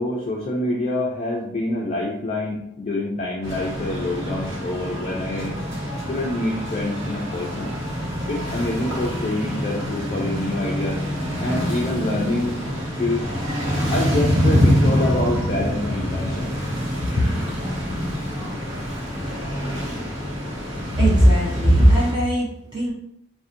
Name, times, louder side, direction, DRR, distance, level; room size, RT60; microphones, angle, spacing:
voice 1, 0.0-5.6 6.1-7.8 8.3-11.0 11.4-12.6 13.0-13.2 13.9-16.5 17.0-17.6 17.9-18.5, left 1 dB, 35° left, -3 dB, 0.3 m, -26 dB
sound 1, 3.4-22.1, equal, 70° right, 0.9 m, -25 dB
voice 2, 20.9-22.9, right 1 dB, 25° right, -5 dB, 0.5 m, -17 dB
2.6 x 2.1 x 2.4 m, 0.76 s
head